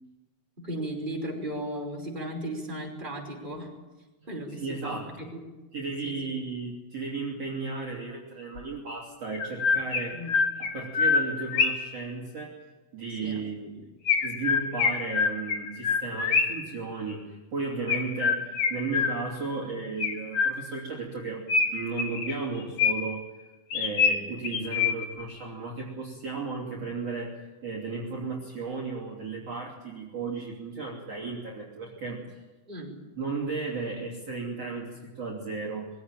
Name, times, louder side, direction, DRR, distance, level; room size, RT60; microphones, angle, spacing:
voice 1, 0.6-3.7 4.3-5.4 6.0-6.2 10.1-10.3 13.2-13.4 32.7-33.0, right 1 dB, 10° right, 0 dB, 5.3 m, -36 dB
voice 2, 4.5-5.1 5.7-10.2 10.6-12.5 12.9-13.9 14.2-21.5 21.7-23.2 23.7-27.3 27.6-32.2 33.2-35.9, right 4 dB, 45° right, -3 dB, 3.9 m, -34 dB
Chirp tweet, 8.6-8.7 9.3-12.0 14.1-16.7 17.9-19.5 20.0-20.9 21.5-23.2 23.7-25.2, left 5 dB, 50° left, 2.9 m, -26 dB
23.0 x 16.5 x 9.0 m, 1.2 s
omnidirectional pair, 4.2 m